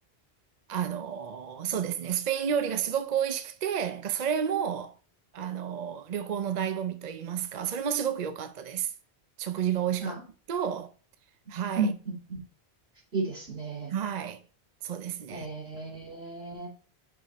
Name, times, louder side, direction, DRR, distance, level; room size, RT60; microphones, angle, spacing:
voice 1, 0.7-4.9 5.3-8.9 9.4-10.2 10.5-10.9 11.5-11.9 13.9-14.4 14.8-15.5, right 8 dB, 50° right, 0.6 m, -31 dB
voice 2, 11.8-12.4 13.1-13.9 15.3-16.7, right 4 dB, 70° right, 3.5 m, -33 dB
5.5 x 5.3 x 4.1 m
omnidirectional pair, 1.1 m